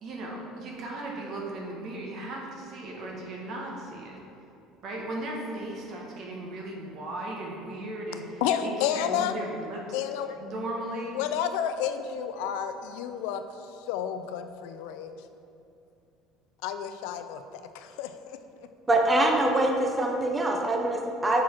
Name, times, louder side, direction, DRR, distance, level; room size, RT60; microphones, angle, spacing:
voice 1, 0.0-4.2 4.8-10.0 10.4-11.2, right 1 dB, 40° right, -1 dB, 1.2 m, -37 dB
voice 2, 8.4-9.3 9.9-10.4 11.1-13.4 13.9-15.1 16.6-18.4, left 9 dB, 85° left, 9 dB, 0.4 m, -30 dB
voice 3, 18.9-21.4, right 1 dB, 15° right, 1 dB, 0.5 m, -24 dB
5.8 x 4.7 x 4.4 m, 2.6 s
cardioid pair, 155°, 0 cm